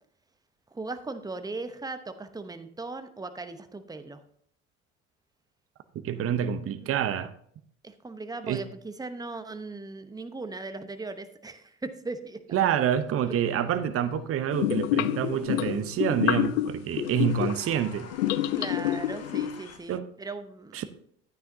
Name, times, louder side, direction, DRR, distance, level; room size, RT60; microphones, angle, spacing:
voice 1, 0.7-4.2 6.1-7.0 7.8-12.4 18.5-20.8, right 3 dB, 10° right, 0.9 m, -38 dB
voice 2, 6.0-7.3 8.5-8.6 12.5-18.1 19.9-20.1 20.7-20.9, right 9 dB, 40° right, 0.8 m, -27 dB
sound 1, 13.0-19.8, left 6 dB, 45° left, 1.6 m, -50 dB
sound 2, 14.5-17.7 18.1-19.7, left 12 dB, 80° left, 0.5 m, -28 dB
11.0 x 9.3 x 2.7 m
hypercardioid pair, 70°, 36 cm